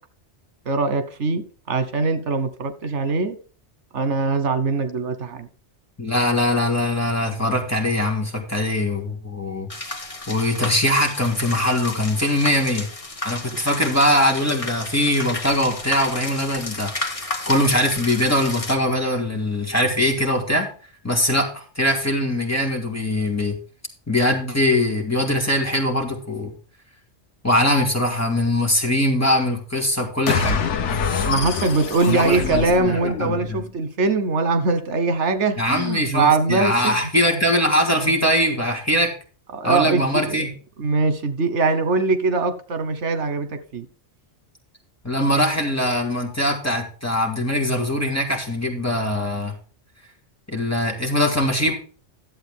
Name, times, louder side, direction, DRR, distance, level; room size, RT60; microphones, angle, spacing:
voice 1, 0.6-3.4 3.9-5.5 31.2-37.0 39.5-40.4 40.8-43.9, right 3 dB, 85° right, 10 dB, 1.5 m, -22 dB
voice 2, 6.0-12.9 13.2-20.7 21.0-23.5 24.1-26.5 27.4-30.6 32.1-33.6 35.6-39.1 39.6-40.5 45.0-49.5 50.5-51.7, left 1 dB, 15° left, 0 dB, 2.3 m, -22 dB
sound 1, 9.7-18.7, left 2 dB, 30° left, 1.3 m, -32 dB
sound 2, 30.3-33.6, left 6 dB, 90° left, 1.1 m, -25 dB
12.0 x 7.8 x 3.6 m, 0.39 s
omnidirectional pair, 1.2 m